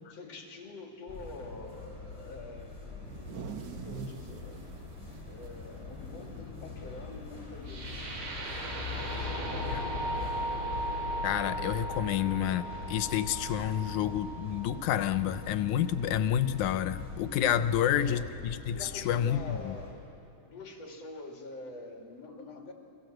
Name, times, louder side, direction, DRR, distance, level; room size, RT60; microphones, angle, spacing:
voice 1, 0.1-3.1 3.7-4.6 5.3-8.0 9.0-10.1 17.7-18.3 18.7-20.0 20.4-22.7, left 2 dB, 60° left, 1 dB, 3.9 m, -46 dB
sound 1, 1.1-19.9, left 4 dB, 20° left, 6.9 m, -43 dB
sound 2, 2.9-6.6 7.0-7.1 7.5-7.9 9.1-9.2 10.2-10.3, right 7 dB, 60° right, 1.1 m, -45 dB
sound 3, 7.7-15.7, right 1 dB, 80° right, 5.3 m, -37 dB
voice 2, 11.2-19.7, left 10 dB, 90° left, 12 dB, 2.3 m, -29 dB
29.5 x 24.0 x 7.8 m, 2.6 s
omnidirectional pair, 3.4 m